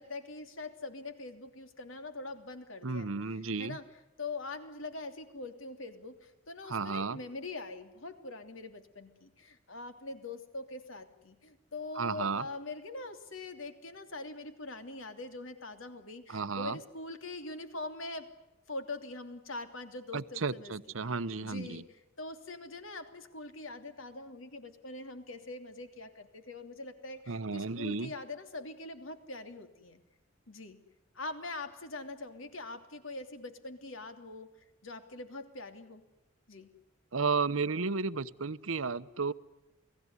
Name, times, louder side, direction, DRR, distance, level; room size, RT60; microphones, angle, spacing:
voice 1, 0.0-3.9 4.2-18.3 18.7-20.7 21.0-30.0 30.5-30.8 31.1-34.5 34.8-36.0 36.5-36.7, left 2 dB, 75° left, 8 dB, 3.0 m, -43 dB
voice 2, 2.8-3.8 6.7-7.2 12.0-12.4 16.3-16.8 20.1-21.8 27.3-28.1 37.1-39.3, right 4 dB, 85° right, 15 dB, 0.9 m, -33 dB
29.5 x 18.0 x 9.7 m, 0.98 s
head